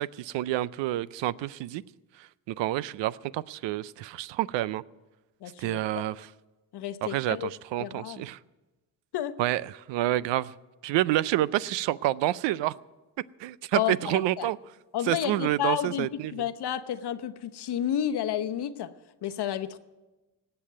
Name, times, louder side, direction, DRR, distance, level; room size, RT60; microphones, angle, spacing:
voice 1, 0.0-1.8 2.5-4.8 5.6-6.3 7.0-8.4 9.4-9.6 9.9-10.5 10.8-12.7 13.4-14.6 15.1-16.4, right 15 dB, 80° right, 19 dB, 0.5 m, -28 dB
voice 2, 5.4-6.0 6.7-7.5 7.8-8.3 9.1-9.4 13.7-14.5 14.9-18.9 19.2-19.8, left 10 dB, 65° left, 10 dB, 0.9 m, -31 dB
18.0 x 6.9 x 9.2 m, 1.1 s
supercardioid pair, 65°, 42 cm